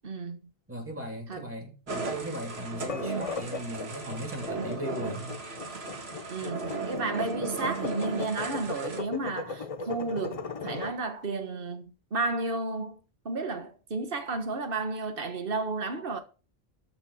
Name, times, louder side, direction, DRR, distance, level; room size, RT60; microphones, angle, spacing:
voice 1, 0.0-0.4 1.3-1.4 6.3-11.8 12.1-13.0 13.2-16.2, right 3 dB, 60° right, 1.7 m, -32 dB
voice 2, 0.7-5.4, equal, 10° right, 3.1 m, -38 dB
sound 1, 1.9-9.0, right 3 dB, 80° right, 2.0 m, -36 dB
sound 2, 2.8-11.0, left 4 dB, 40° left, 0.7 m, -37 dB
13.5 x 5.9 x 5.6 m
omnidirectional pair, 1.0 m